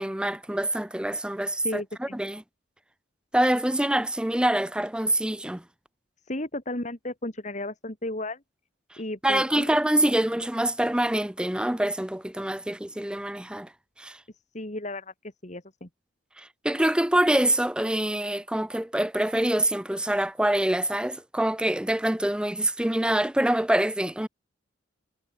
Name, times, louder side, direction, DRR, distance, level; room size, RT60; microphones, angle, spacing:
voice 1, 0.0-2.4 3.3-5.6 9.2-13.7 14.0-14.2 16.4-24.3, right 1 dB, 5° right, 0.5 m, -25 dB
voice 2, 1.6-2.2 6.3-8.4 9.0-9.7 14.5-15.1 15.4-15.9, left 1 dB, 35° left, 2.5 m, -34 dB
head